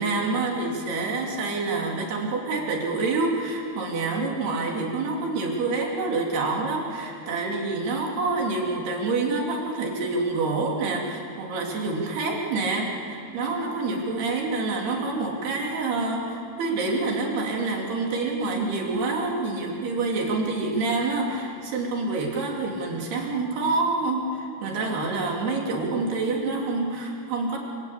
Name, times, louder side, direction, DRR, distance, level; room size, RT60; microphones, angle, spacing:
voice 1, 0.0-27.6, right 3 dB, 85° right, -1 dB, 5.3 m, -27 dB
27.0 x 26.0 x 8.5 m, 2.6 s
omnidirectional pair, 4.5 m